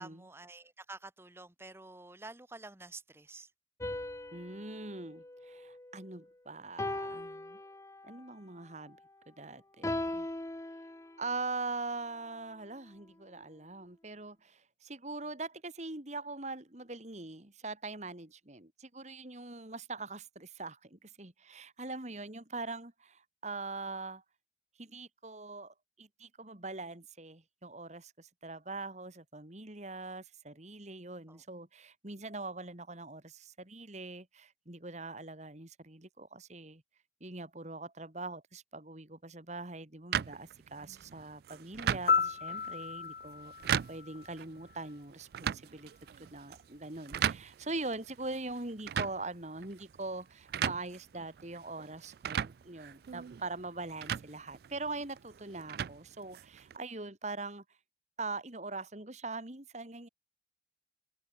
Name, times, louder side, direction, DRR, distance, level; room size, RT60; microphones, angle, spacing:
voice 1, 0.0-3.5 31.3-31.4, right 2 dB, 15° right, 1.1 m, -49 dB
sound 1, 3.8-6.2 6.8-8.3 9.8-11.5, left 1 dB, 15° left, 0.7 m, -40 dB
voice 2, 4.3-7.6 8.0-9.0 9.3-10.3 11.2-24.2 24.8-36.8 37.2-43.5 43.9-45.9 46.3-57.6 58.2-60.1, right 3 dB, 40° right, 2.4 m, -42 dB
sound 2, 40.1-56.8, right 8 dB, 60° right, 0.3 m, -39 dB
Piano, 42.1-45.0 53.2-53.4, left 6 dB, 50° left, 1.0 m, -34 dB
open air
head